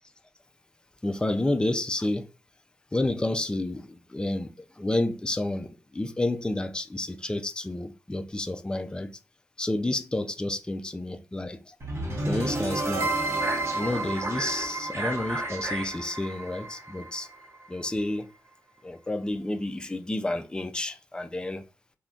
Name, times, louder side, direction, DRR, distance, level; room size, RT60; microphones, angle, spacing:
voice 1, 1.0-2.3 2.9-4.5 4.8-9.1 9.6-11.7 12.3-13.1 13.7-17.3 17.7-18.3 18.8-21.6, left 2 dB, 15° left, 0.4 m, -30 dB
sound 1, 11.8-17.9, right 2 dB, 45° right, 1.0 m, -31 dB
3.7 x 2.2 x 2.3 m
cardioid pair, 60°, 6 cm